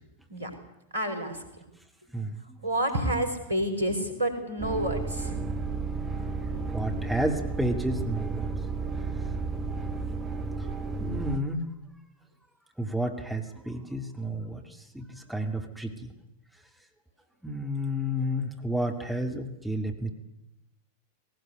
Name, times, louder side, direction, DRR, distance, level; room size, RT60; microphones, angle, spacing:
voice 1, 0.9-1.4 2.6-5.4, right 1 dB, 70° right, 6 dB, 4.8 m, -29 dB
sound 1, 4.6-11.4, right 4 dB, 25° right, 1.8 m, -32 dB
voice 2, 6.7-8.5 11.0-11.7 12.8-14.6 14.9-15.9 17.4-20.1, equal, 5° right, 2 dB, 2.5 m, -31 dB
19.0 x 18.5 x 9.5 m, 0.90 s
figure-of-eight pair, 90°, 0 cm